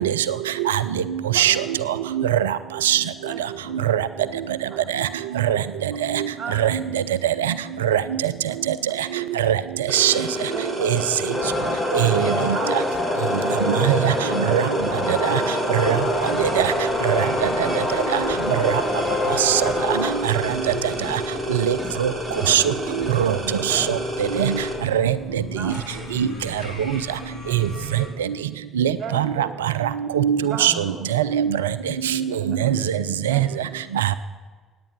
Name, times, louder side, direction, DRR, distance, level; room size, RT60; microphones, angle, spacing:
voice 1, 0.9-1.3 3.5-3.8 4.2-4.4 4.8-4.9 7.7-7.8 9.8-9.9 13.8-14.1 17.3-17.8 19.7-19.8 20.6-20.9 22.5-22.8 25.3-25.5 26.0-26.8 28.3-28.4 30.3-30.8 31.8-33.7, left 1 dB, 75° left, -4 dB, 4.8 m, -41 dB
voice 2, 8.2-9.0 10.2-11.1 11.5-12.2 12.5-13.8 16.2-16.4 18.1-18.2 20.3-20.4 23.7-23.9 25.5-26.1 26.5-26.6 27.1-28.1 29.0-29.5 30.5-31.2 32.4-32.6 33.3-33.5, right 4 dB, 45° right, 2 dB, 3.3 m, -37 dB
sound 1, 9.9-24.7, equal, 15° right, 4.0 m, -30 dB
sound 2, 11.3-20.1, left 1 dB, 15° left, 3.7 m, -25 dB
voice 3, 15.1-15.4 15.9-16.0 16.6-16.7 17.1-17.2 17.6-17.7 19.4-19.6 21.5-22.1 22.5-22.6 23.2-23.3 23.7-24.0 24.3-24.5 24.9-25.1 26.2-26.3 28.8-29.5 29.8-29.9 30.2-30.7 31.1-31.6 32.6-32.8 33.3-33.4 34.0-34.1, right 11 dB, 75° right, 16 dB, 0.4 m, -20 dB
sound 3, 16.0-28.1, left 3 dB, 55° left, 5.2 m, -40 dB
17.5 x 9.5 x 6.1 m, 1.4 s
figure-of-eight pair, 50°, 0 cm